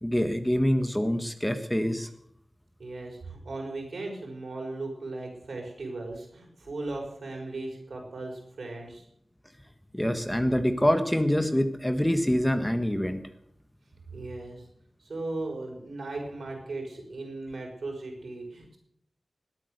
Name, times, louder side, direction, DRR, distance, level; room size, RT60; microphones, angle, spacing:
voice 1, 0.0-2.1 9.9-13.2, equal, 10° left, 8 dB, 1.5 m, -25 dB
voice 2, 2.8-9.1 14.1-14.6 15.0-18.8, right 2 dB, 80° right, 1 dB, 5.9 m, -37 dB
20.0 x 8.9 x 6.7 m, 0.70 s
wide cardioid pair, 60°, 0 cm